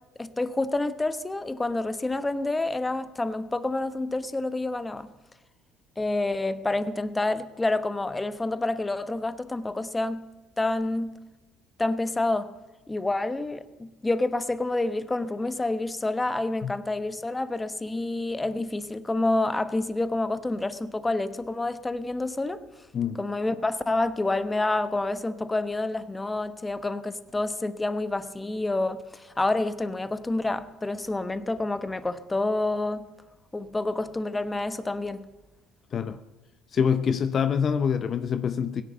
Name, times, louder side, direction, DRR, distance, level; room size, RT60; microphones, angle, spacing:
voice 1, 0.2-5.1 6.0-10.3 10.6-11.2 11.8-12.5 12.9-22.6 23.2-33.1 33.5-35.2, left 2 dB, 15° left, 1.0 m, -28 dB
voice 2, 36.7-38.8, left 7 dB, 45° left, 0.7 m, -25 dB
17.0 x 10.5 x 7.9 m
supercardioid pair, 75°, 0 cm